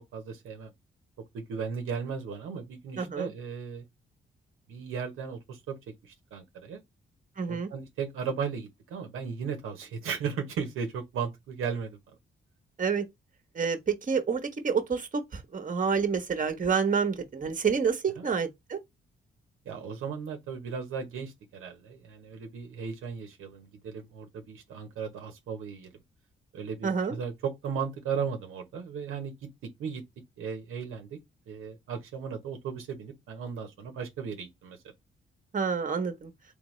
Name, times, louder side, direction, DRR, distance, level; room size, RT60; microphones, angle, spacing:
voice 1, 0.1-0.7 1.3-3.8 4.7-5.8 6.0-6.8 7.5-12.0 18.2-18.3 19.6-25.9 26.5-29.5 29.8-30.0 30.4-31.2 31.5-34.8, right 6 dB, 85° right, 0.9 m, -36 dB
voice 2, 3.0-3.3 7.4-7.7 12.8-13.0 13.5-18.8 26.8-27.2 35.5-36.3, right 6 dB, 40° right, 1.1 m, -28 dB
3.5 x 3.3 x 3.2 m
supercardioid pair, 55°, 21 cm